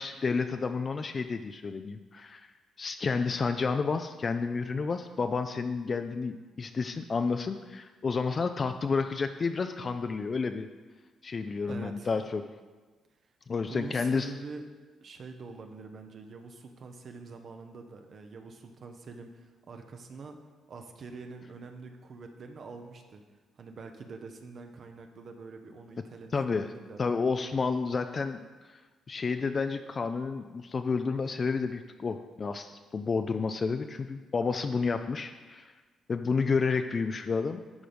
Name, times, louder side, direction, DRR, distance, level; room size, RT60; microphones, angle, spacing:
voice 1, 0.0-2.5 2.8-10.7 11.2-12.4 13.5-14.3 26.3-26.7 27.0-28.4 29.1-35.7 36.1-37.6, left 4 dB, 40° left, 8 dB, 0.4 m, -30 dB
voice 2, 11.7-12.1 13.7-14.6 15.0-20.4 20.7-23.2 23.6-27.0, right 4 dB, 55° right, 5 dB, 0.7 m, -45 dB
11.0 x 3.9 x 5.1 m, 1.3 s
cardioid pair, 90°, 0 cm